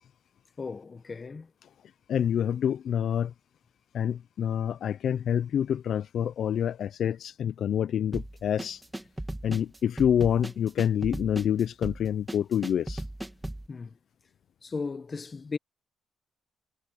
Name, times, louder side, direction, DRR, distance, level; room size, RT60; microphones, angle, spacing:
voice 1, 0.6-1.5 9.5-9.6 13.7-14.0 14.6-15.6, left 4 dB, 35° left, 1.6 m, -36 dB
voice 2, 2.1-3.3 3.9-8.8 9.4-13.0, left 9 dB, 65° left, 0.5 m, -27 dB
sound 1, 8.1-13.7, right 1 dB, 10° right, 2.7 m, -37 dB
cardioid pair, 90°, 0 cm